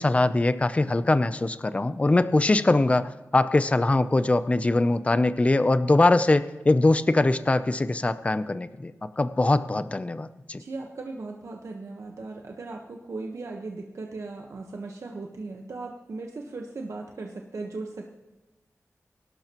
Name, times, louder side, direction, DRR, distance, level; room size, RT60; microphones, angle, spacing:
voice 1, 0.0-10.6, left 2 dB, 25° left, 12 dB, 0.5 m, -22 dB
voice 2, 10.6-18.1, right 3 dB, 70° right, 1 dB, 1.1 m, -37 dB
22.0 x 12.5 x 3.0 m, 1.1 s
wide cardioid pair, 110°, 5 cm